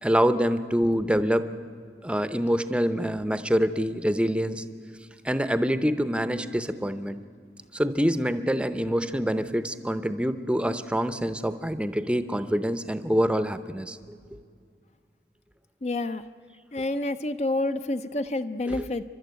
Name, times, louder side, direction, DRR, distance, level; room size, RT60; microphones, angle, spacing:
voice 1, 0.0-1.5 2.0-4.6 5.2-7.2 7.7-14.0 14.3-14.4 18.7-18.8, equal, 5° right, 12 dB, 0.7 m, -25 dB
voice 2, 15.8-16.2 16.7-19.0, left 2 dB, 40° left, 10 dB, 0.5 m, -28 dB
28.5 x 12.5 x 9.3 m, 2.2 s
head